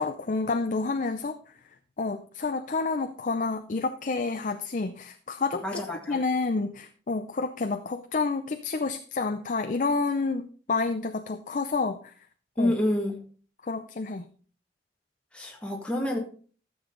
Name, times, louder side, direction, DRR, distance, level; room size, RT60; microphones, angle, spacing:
voice 1, 0.0-1.4 2.0-5.8 6.1-12.1 12.6-12.7 13.6-14.3, left 3 dB, 45° left, 8 dB, 0.6 m, -29 dB
voice 2, 5.6-6.2 12.6-13.2 15.3-16.2, left 1 dB, 5° left, 0 dB, 1.8 m, -28 dB
13.5 x 7.0 x 3.8 m, 0.41 s
head